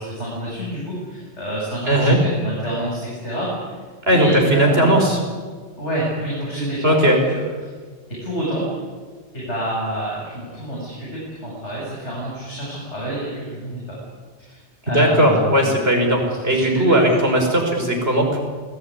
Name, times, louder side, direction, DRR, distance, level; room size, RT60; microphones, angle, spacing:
voice 1, 0.0-3.8 4.1-5.1 5.8-7.7 8.2-8.7 9.3-14.0 14.4-14.6 14.9-15.8 16.2-17.2 17.4-17.5, equal, 85° left, -5 dB, 8.2 m, -28 dB
voice 2, 1.9-2.2 4.1-5.2 6.8-7.2 14.9-18.4, right 1 dB, 60° right, 1 dB, 5.8 m, -17 dB
28.0 x 18.5 x 9.8 m, 1.5 s
omnidirectional pair, 1.1 m